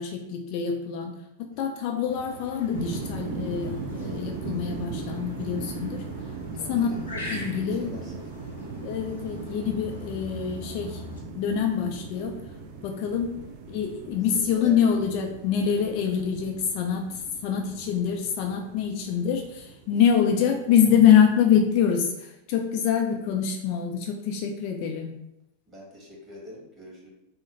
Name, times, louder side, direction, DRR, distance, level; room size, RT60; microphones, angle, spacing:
voice 1, 0.0-6.0 6.7-8.0 8.8-11.0 11.3-12.4 12.8-13.4 13.7-25.2, left 8 dB, 45° left, 2 dB, 0.3 m, -25 dB
sound 1, 2.1-11.2, equal, 80° left, 0.7 m, -42 dB
sound 2, 2.7-21.6, right 4 dB, 45° right, 0.4 m, -39 dB
voice 2, 6.5-8.5 14.2-14.8 19.0-19.1 22.9-23.2 25.7-27.1, equal, 20° right, -3 dB, 1.1 m, -46 dB
2.4 x 2.2 x 3.1 m, 0.84 s
figure-of-eight pair, 90°, 0 cm